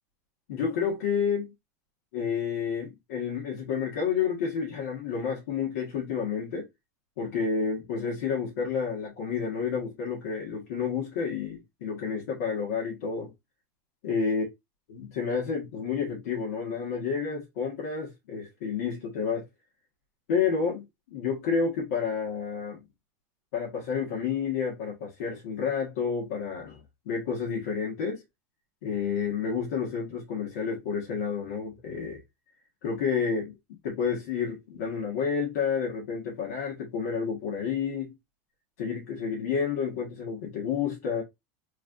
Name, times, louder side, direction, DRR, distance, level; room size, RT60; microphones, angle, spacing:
voice 1, 0.5-1.5 2.1-6.7 7.2-13.3 14.0-14.4 14.9-19.5 20.3-22.8 23.5-28.2 28.8-32.2 32.8-33.5 33.8-38.1 38.8-41.2, left 6 dB, 75° left, 1.5 m, -30 dB
3.3 x 3.3 x 2.5 m
supercardioid pair, 140°, 8 cm